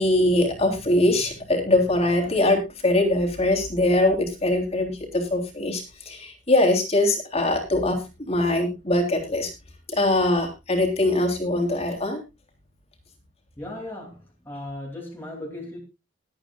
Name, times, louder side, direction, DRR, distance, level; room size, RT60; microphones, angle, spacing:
voice 1, 0.0-8.0 8.3-9.5 9.9-12.2, left 1 dB, 35° left, 4 dB, 3.3 m, -22 dB
voice 2, 13.6-15.8, left 1 dB, 10° left, -1 dB, 2.8 m, -37 dB
21.5 x 8.9 x 2.4 m, 0.26 s
head